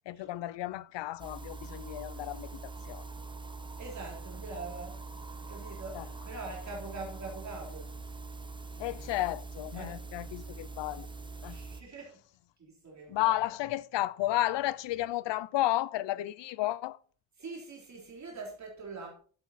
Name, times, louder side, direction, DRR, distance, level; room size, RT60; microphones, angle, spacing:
voice 1, 0.1-3.0 5.9-6.1 8.8-11.1 11.4-11.6 13.1-17.0, left 15 dB, 60° left, 0.7 m, -32 dB
sound 1, 1.2-11.8, right 3 dB, 10° right, 1.0 m, -43 dB
voice 2, 3.8-5.0 5.5-7.9 9.7-9.9 11.5-12.1 12.6-13.4 17.4-19.1, right 3 dB, 35° right, 3.4 m, -43 dB
11.5 x 8.4 x 4.1 m
cardioid pair, 120°, 49 cm